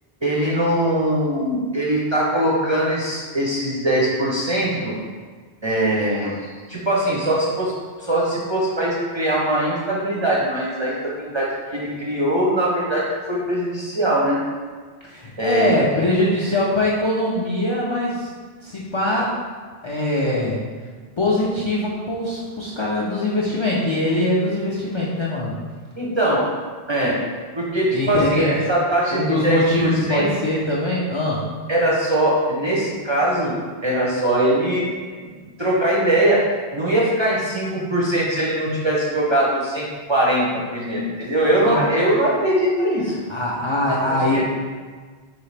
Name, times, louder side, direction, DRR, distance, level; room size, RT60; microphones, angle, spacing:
voice 1, 0.2-4.9 5.6-7.7 8.0-14.4 15.4-15.7 26.0-26.5 26.9-27.2 27.5-30.3 31.7-33.6 33.8-34.9 35.2-35.3 35.6-36.4 36.7-43.1 44.1-44.4, right 1 dB, 35° right, -5 dB, 0.5 m, -21 dB
voice 2, 15.0-18.3 18.6-19.4 19.8-20.6 21.2-25.5 27.9-28.7 29.1-31.4 41.6-41.8 43.3-44.4, left 1 dB, 50° left, -5 dB, 0.3 m, -22 dB
4.0 x 2.8 x 3.2 m, 1.5 s
omnidirectional pair, 1.1 m